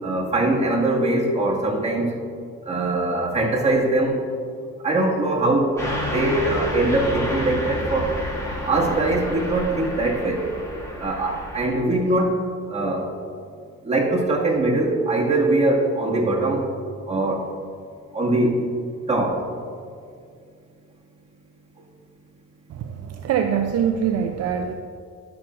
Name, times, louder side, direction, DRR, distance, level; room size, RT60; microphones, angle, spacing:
voice 1, 0.0-2.1 2.7-4.2 4.8-5.7 6.0-8.1 8.7-10.5 11.0-12.4 12.7-13.1 13.8-16.7 17.1-17.4 18.1-18.7 19.1-19.4, right 2 dB, 20° right, -5 dB, 1.8 m, -22 dB
Car passing by / Truck, 5.8-11.7, equal, 10° left, 1.9 m, -30 dB
voice 2, 22.8-24.7, right 8 dB, 55° right, 5 dB, 0.5 m, -23 dB
11.5 x 5.9 x 2.4 m, 2.3 s
cardioid pair, 90°, 30 cm